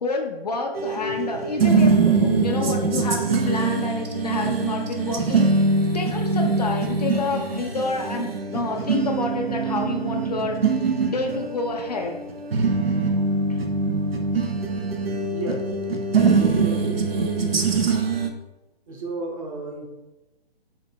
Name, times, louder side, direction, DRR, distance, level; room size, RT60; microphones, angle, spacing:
voice 1, 0.0-5.7 5.9-10.6 11.0-12.2 13.5-13.6, left 3 dB, 40° left, 2 dB, 0.5 m, -28 dB
sound 1, 0.7-18.3, right 4 dB, 70° right, 0.7 m, -23 dB
voice 2, 15.3-17.0 18.9-19.8, right 2 dB, 35° right, -1 dB, 0.8 m, -33 dB
3.7 x 2.8 x 4.3 m, 1.0 s
figure-of-eight pair, 135°, 31 cm